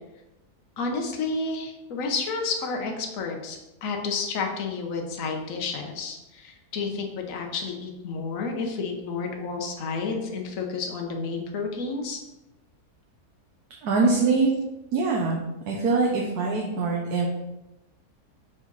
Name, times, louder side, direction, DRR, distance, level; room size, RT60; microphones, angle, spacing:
voice 1, 0.8-12.2, left 4 dB, 60° left, 2 dB, 1.3 m, -31 dB
voice 2, 13.8-14.5 14.9-15.4 15.7-17.3, right 4 dB, 75° right, -1 dB, 1.4 m, -23 dB
7.2 x 5.0 x 4.0 m, 0.97 s
omnidirectional pair, 1.7 m